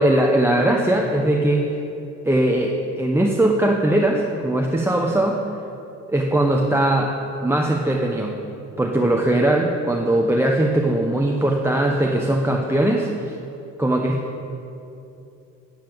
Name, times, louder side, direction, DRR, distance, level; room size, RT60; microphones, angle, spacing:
voice 1, 0.0-1.6 2.2-5.4 6.1-7.1 7.4-8.3 8.8-13.4 13.8-14.2, right 1 dB, 10° right, 0 dB, 0.8 m, -20 dB
9.0 x 7.2 x 7.9 m, 2.8 s
cardioid pair, 90°, 30 cm